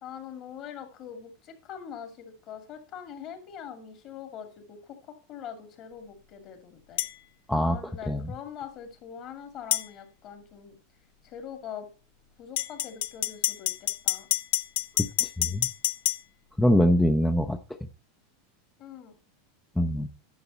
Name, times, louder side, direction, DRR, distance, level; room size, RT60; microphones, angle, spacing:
voice 1, 0.0-7.0 7.6-10.8 11.2-11.9 12.4-14.3 18.8-19.1, left 8 dB, 45° left, 7 dB, 2.3 m, -43 dB
sound 1, 7.0-7.1 9.7-9.9 12.6-16.2, left 13 dB, 75° left, 0.6 m, -27 dB
voice 2, 15.4-15.7 16.6-17.6 19.8-20.1, left 1 dB, 5° left, 5 dB, 0.6 m, -23 dB
11.0 x 6.0 x 4.2 m, 0.33 s
hypercardioid pair, 115°, 0 cm